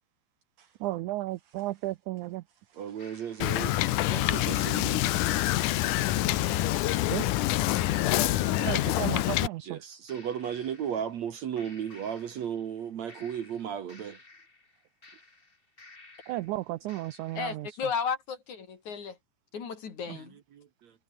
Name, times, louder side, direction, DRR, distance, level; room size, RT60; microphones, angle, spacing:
voice 1, 0.6-2.4 2.7-3.4 4.8-6.0 7.1-7.2 8.2-9.8 16.3-17.8 20.1-20.2, right 17 dB, 85° right, 1.7 m, -36 dB
voice 2, 2.8-5.1 9.7-14.2 20.5-20.9, right 8 dB, 55° right, 2.4 m, -35 dB
sound 1, 3.0-9.1 10.1-11.3 11.6-12.8 13.1-16.5 16.9-17.5, left 3 dB, 20° left, 2.2 m, -48 dB
Wind / Boat Water vehicle, 3.4-9.5, left 15 dB, 70° left, 2.2 m, -26 dB
voice 3, 17.3-19.2 19.5-20.4, left 6 dB, 55° left, 4.4 m, -34 dB
omnidirectional pair, 4.2 m